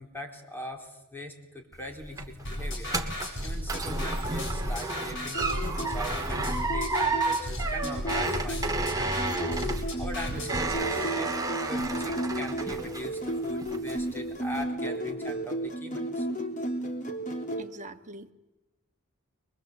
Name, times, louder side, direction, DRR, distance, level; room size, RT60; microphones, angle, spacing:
voice 1, 0.0-2.9 3.4-9.3 10.0-11.3 11.7-16.3, equal, 10° left, 2 dB, 4.1 m, -41 dB
sound 1, 1.7-13.3 13.6-14.1 14.5-14.6, right 3 dB, 15° right, 2.2 m, -32 dB
sound 2, 2.4-10.6, equal, 60° left, 7.7 m, -35 dB
sound 3, 5.1-17.6, right 1 dB, 35° left, 3.3 m, -34 dB
voice 2, 17.6-18.3, right 2 dB, 35° right, 6 dB, 1.6 m, -43 dB
24.0 x 23.0 x 8.2 m, 1.0 s
head